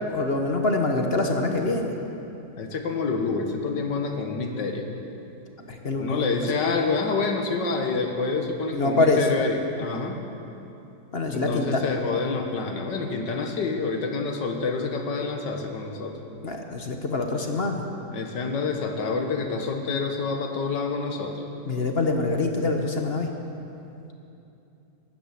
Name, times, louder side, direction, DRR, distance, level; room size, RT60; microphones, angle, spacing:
voice 1, 0.1-1.9 5.6-6.3 8.7-9.3 11.1-11.8 16.4-17.8 21.7-23.3, left 2 dB, 40° left, 3 dB, 1.2 m, -25 dB
voice 2, 2.6-4.9 6.0-10.2 11.3-16.2 18.1-21.4, left 4 dB, 75° left, 4 dB, 2.0 m, -27 dB
14.5 x 11.5 x 8.3 m, 2.8 s
omnidirectional pair, 1.9 m